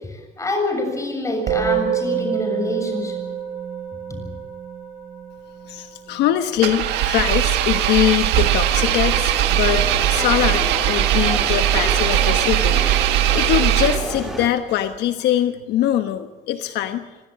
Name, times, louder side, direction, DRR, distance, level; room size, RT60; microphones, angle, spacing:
voice 1, 0.4-3.2, left 1 dB, 20° left, 4 dB, 7.0 m, -25 dB
Musical instrument, 1.5-11.0, right 8 dB, 55° right, 5.6 m, -29 dB
voice 2, 5.7-17.2, left 12 dB, 80° left, 8 dB, 1.2 m, -23 dB
Engine, 6.6-14.3, right 12 dB, 90° right, 1.8 m, -19 dB
sound 1, 8.7-14.5, equal, ahead, 2.9 m, -31 dB
25.0 x 17.5 x 7.6 m, 1.3 s
cardioid pair, 110°, 17 cm